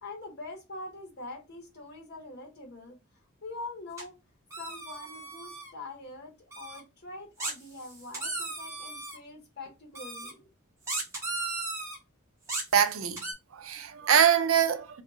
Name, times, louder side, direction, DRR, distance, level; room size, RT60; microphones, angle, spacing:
voice 1, 0.0-3.0 3.4-4.2 4.6-10.5, left 2 dB, 50° left, 1.1 m, -44 dB
sound 1, 4.0-4.1 4.5-5.7 6.5-6.8 7.4-9.2 9.9-10.3 10.9-12.0 12.5-13.3, right 2 dB, 15° right, 1.0 m, -36 dB
voice 2, 12.7-13.2 13.5-15.0, right 8 dB, 75° right, 0.5 m, -24 dB
2.8 x 2.3 x 3.6 m
head